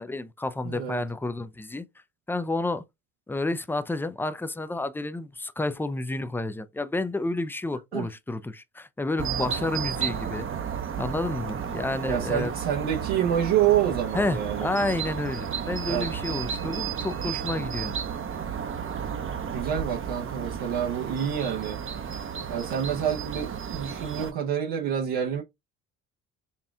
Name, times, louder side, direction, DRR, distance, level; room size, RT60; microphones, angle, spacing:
voice 1, 0.0-1.9 2.3-2.8 3.3-10.5 11.0-12.5 14.1-18.0, left 2 dB, 5° left, 0.4 m, -30 dB
voice 2, 0.6-1.0 7.9-8.1 12.1-14.7 15.9-16.1 19.5-21.8 22.5-25.4, right 9 dB, 75° right, 0.9 m, -27 dB
sound 1, 9.2-24.3, right 7 dB, 35° right, 0.7 m, -33 dB
4.3 x 2.3 x 3.5 m
supercardioid pair, 75°, 39 cm